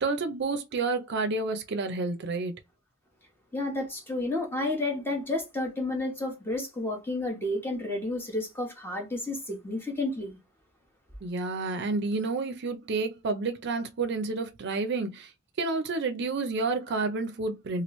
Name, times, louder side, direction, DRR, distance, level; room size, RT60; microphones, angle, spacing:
voice 1, 0.0-2.5 11.2-15.3 15.6-17.8, right 3 dB, 55° right, 0.5 m, -30 dB
voice 2, 3.5-10.4, left 2 dB, 10° left, 0.9 m, -31 dB
3.0 x 2.4 x 3.0 m
head